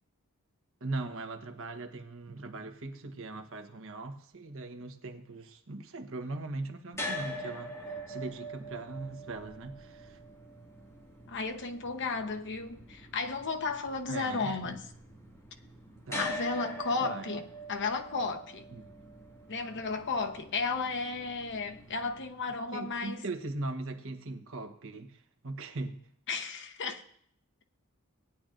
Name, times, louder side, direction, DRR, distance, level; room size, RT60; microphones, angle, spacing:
voice 1, 0.8-7.7 8.1-10.2 14.1-14.8 16.1-16.3 17.0-17.3 18.7-18.9 22.7-26.0, right 2 dB, 65° right, 1.2 m, -40 dB
sound 1, 6.9-23.1, equal, 15° left, 2.1 m, -44 dB
voice 2, 11.3-14.8 16.2-18.7 19.5-23.2 26.3-27.0, left 4 dB, 55° left, 1.0 m, -34 dB
18.0 x 10.0 x 2.6 m
head